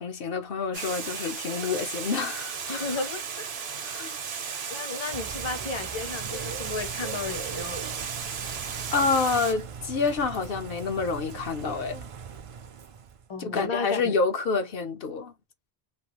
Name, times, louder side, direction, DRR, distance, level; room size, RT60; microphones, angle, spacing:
voice 1, 0.0-3.0 3.8-4.2 8.9-12.1 13.4-15.3, left 4 dB, 65° left, 0.8 m, -28 dB
Water, 0.7-9.5, right 6 dB, 80° right, 1.0 m, -35 dB
voice 2, 2.7-3.5 4.0-4.3 4.7-7.8 13.3-14.2, left 4 dB, 35° left, 0.6 m, -34 dB
Bird / Rain, 5.1-13.3, right 6 dB, 55° right, 0.3 m, -40 dB
3.2 x 2.3 x 2.9 m
omnidirectional pair, 1.0 m